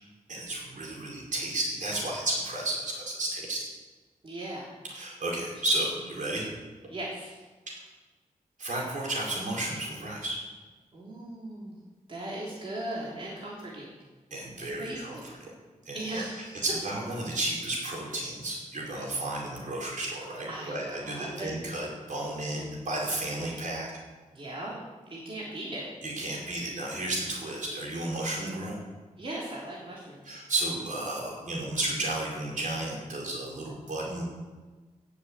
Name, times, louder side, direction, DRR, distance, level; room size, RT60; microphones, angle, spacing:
voice 1, 0.3-3.6 4.9-6.5 7.7-7.8 8.6-10.4 14.3-15.2 15.4-15.5 15.8-16.2 16.6-23.9 26.0-28.8 30.2-34.2, right 1 dB, 65° right, -2 dB, 4.9 m, -32 dB
voice 2, 4.2-4.7 5.4-5.5 6.9-7.4 10.9-11.7 12.1-13.9 14.6-15.3 15.9-16.6 18.9-19.1 20.5-21.6 22.5-22.7 24.3-24.8 25.1-25.9 29.2-30.4, right 1 dB, 40° right, -5 dB, 3.2 m, -38 dB
18.0 x 7.2 x 8.3 m, 1.3 s
wide cardioid pair, 150°, 14 cm